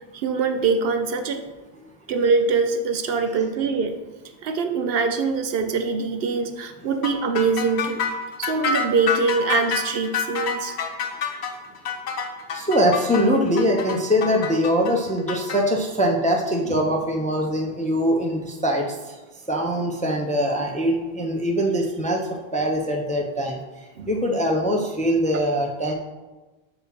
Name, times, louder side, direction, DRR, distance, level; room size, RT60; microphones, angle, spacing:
voice 1, 0.1-1.5 2.1-4.0 4.4-8.0 8.4-10.8 16.7-16.8 24.0-24.1, right 4 dB, 70° right, 7 dB, 0.8 m, -23 dB
sound 1, 7.0-15.6, left 6 dB, 85° left, 0.9 m, -27 dB
voice 2, 12.5-19.1 19.5-23.6 24.1-25.9, equal, 10° left, 1 dB, 0.5 m, -22 dB
7.2 x 2.9 x 5.9 m, 1.2 s
omnidirectional pair, 1.1 m